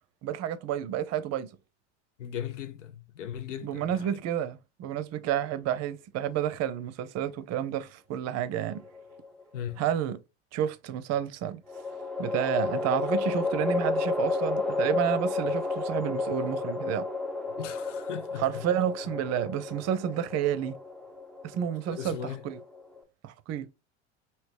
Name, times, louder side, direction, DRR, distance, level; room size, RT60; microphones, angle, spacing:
voice 1, 0.2-1.5 3.6-8.8 9.8-10.2 10.5-11.6 12.2-17.1 18.4-20.8 21.4-22.6 23.2-23.7, right 10 dB, 45° right, 0.5 m, -30 dB
voice 2, 2.2-4.1 9.5-9.8 17.6-18.4 21.9-22.4, left 9 dB, 85° left, 0.6 m, -38 dB
sound 1, 8.6-9.4 11.7-23.0, left 3 dB, ahead, 0.3 m, -32 dB
3.0 x 2.8 x 3.3 m
hypercardioid pair, 80°, 36 cm